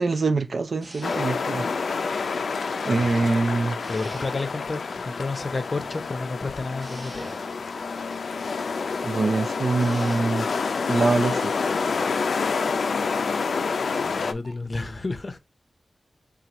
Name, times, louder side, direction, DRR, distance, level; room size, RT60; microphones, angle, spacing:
voice 1, 0.0-2.3 2.8-3.8 9.0-10.5 10.9-11.5, right 3 dB, 60° right, 0.4 m, -24 dB
sound 1, 0.8-1.7 3.8-4.8 6.8-7.8 9.8-10.6, right 1 dB, 40° right, 1.0 m, -44 dB
sound 2, 1.0-14.3, left 4 dB, 85° left, 0.4 m, -28 dB
voice 2, 2.9-3.3 3.9-7.3 14.0-15.4, left 3 dB, 40° left, 0.6 m, -31 dB
sound 3, 5.7-5.9 6.9-7.1 7.8-8.0 8.8-9.0 9.6-9.8 12.3-12.7 13.4-13.5 13.8-14.0 14.4-14.5, equal, 15° right, 0.8 m, -49 dB
4.4 x 2.3 x 3.9 m
wide cardioid pair, 115°, 0 cm